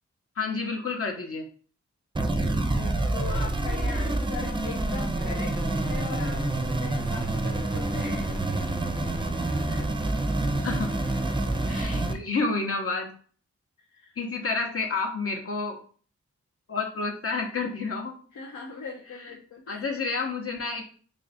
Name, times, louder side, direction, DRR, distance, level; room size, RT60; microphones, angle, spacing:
voice 1, 0.4-1.5 10.6-10.9 11.7-13.1 14.2-15.8 16.7-18.2 19.7-20.8, left 4 dB, 50° left, 1 dB, 0.8 m, -29 dB
sound 1, 2.1-12.1, right 2 dB, 15° right, 0.5 m, -27 dB
voice 2, 2.4-8.3 9.6-9.9 11.2-11.3 13.8-14.2 18.3-19.8, left 5 dB, 85° left, -1 dB, 0.6 m, -40 dB
3.2 x 2.4 x 4.0 m, 0.43 s
cardioid pair, 60°, 29 cm